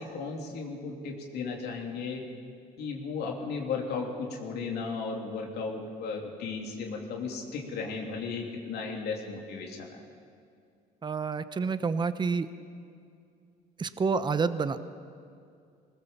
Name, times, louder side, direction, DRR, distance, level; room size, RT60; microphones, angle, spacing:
voice 1, 0.0-2.2 2.8-10.0, left 4 dB, 75° left, 1 dB, 3.3 m, -35 dB
voice 2, 11.0-12.5 13.8-14.8, right 5 dB, 25° right, 12 dB, 0.9 m, -28 dB
21.0 x 19.5 x 7.3 m, 2.4 s
cardioid pair, 110°, 17 cm